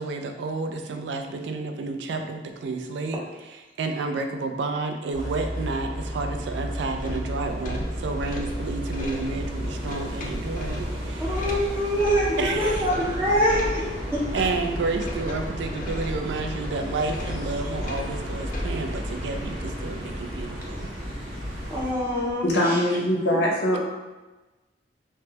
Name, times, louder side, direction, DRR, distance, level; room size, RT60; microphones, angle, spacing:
voice 1, 0.0-11.4 12.4-12.9 14.3-20.9, right 3 dB, 80° right, 5 dB, 0.3 m, -30 dB
sound 1, 5.1-21.9, equal, 30° right, 1.0 m, -33 dB
sound 2, 6.9-19.4, left 1 dB, 50° left, 0.4 m, -37 dB
voice 2, 11.2-13.9 14.1-14.2 21.7-22.8, equal, 10° right, -6 dB, 0.5 m, -24 dB
sound 3, 13.3-22.3, equal, 50° right, 0.9 m, -41 dB
voice 3, 22.4-23.8, left 1 dB, 85° left, -4 dB, 0.9 m, -22 dB
3.4 x 2.1 x 2.9 m, 1.1 s
head